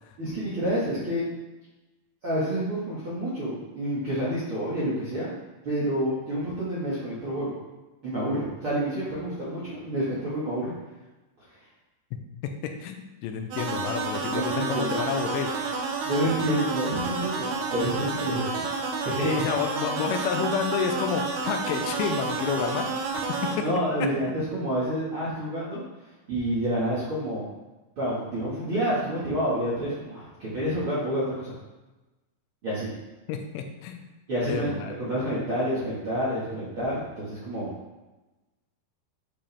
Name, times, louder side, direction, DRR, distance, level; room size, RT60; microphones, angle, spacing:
voice 1, 0.2-1.3 2.2-5.3 5.6-7.5 8.0-10.7 14.3-15.0 16.0-18.5 19.0-19.4 23.5-25.8 26.3-27.4 28.0-31.5 32.6-32.9 34.3-34.7 35.0-37.7, equal, 65° right, -9 dB, 1.3 m, -28 dB
voice 2, 12.8-15.8 19.4-23.0 23.4-23.7 33.3-34.0 34.5-34.9, left 7 dB, 85° left, 5 dB, 3.1 m, -30 dB
sound 1, 13.5-23.5, right 4 dB, 85° right, 3.7 m, -30 dB
9.9 x 5.3 x 3.5 m, 1.1 s
omnidirectional pair, 5.6 m